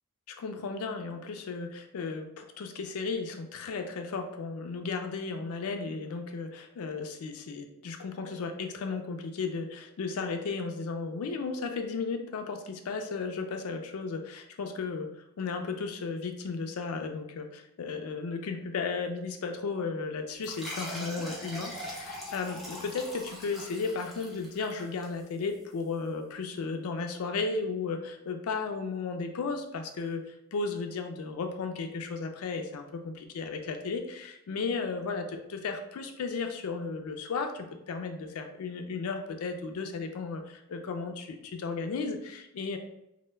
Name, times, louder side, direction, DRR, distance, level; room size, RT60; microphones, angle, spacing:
voice 1, 0.3-15.1 15.4-30.2 30.5-42.8, left 4 dB, 85° left, 6 dB, 0.4 m, -34 dB
sound 1, 20.4-25.6, equal, ahead, 0.5 m, -42 dB
2.1 x 2.1 x 3.2 m, 0.85 s
head